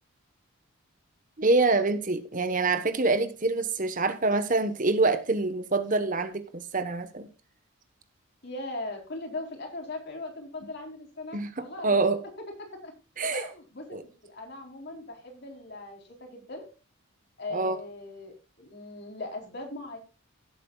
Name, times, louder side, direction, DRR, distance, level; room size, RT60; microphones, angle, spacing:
voice 1, 1.4-7.3 11.3-12.2 13.2-13.5 13.9-14.0 17.5-17.8, right 3 dB, 40° right, 1.2 m, -26 dB
voice 2, 8.4-12.1 12.6-12.9 13.3-16.7 17.4-20.0, left 2 dB, 50° left, 4.0 m, -39 dB
17.0 x 8.6 x 2.4 m
head